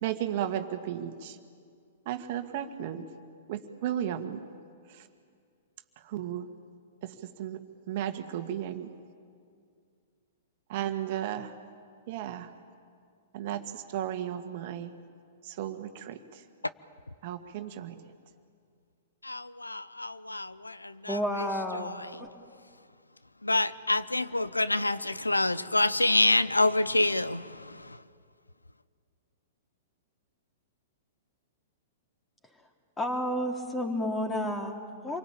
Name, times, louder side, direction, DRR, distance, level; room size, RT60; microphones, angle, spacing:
voice 1, 0.0-1.4 2.1-3.1 3.5-4.4 6.1-6.5 7.0-8.9 10.7-11.5 12.1-12.5 13.3-14.9 15.5-16.2 17.2-18.0, right 11 dB, 50° right, 1.9 m, -34 dB
voice 2, 19.2-21.2 23.4-28.0, left 2 dB, 90° left, 0.7 m, -27 dB
voice 3, 21.0-21.9 22.2-22.3 33.0-35.2, equal, 10° left, 3.5 m, -31 dB
28.0 x 24.0 x 8.8 m
figure-of-eight pair, 110°, 0 cm